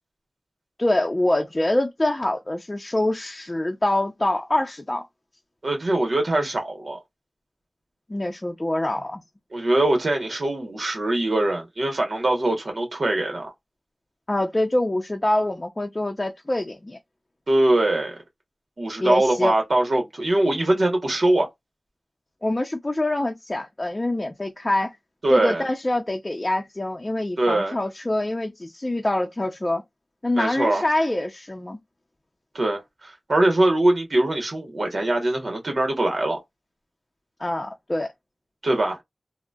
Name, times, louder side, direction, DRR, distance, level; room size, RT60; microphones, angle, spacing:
voice 1, 0.8-5.0 8.1-9.2 14.3-17.0 19.0-19.5 22.4-24.9 25.3-29.8 30.2-31.8 37.4-38.1, left 1 dB, 30° left, 0.5 m, -25 dB
voice 2, 5.6-7.0 9.5-13.5 17.5-18.2 18.8-21.5 25.2-25.6 27.4-27.7 30.4-30.8 32.5-36.4 38.6-39.0, right 1 dB, 70° right, 1.0 m, -22 dB
3.7 x 2.1 x 2.2 m
wide cardioid pair, 60°, 0 cm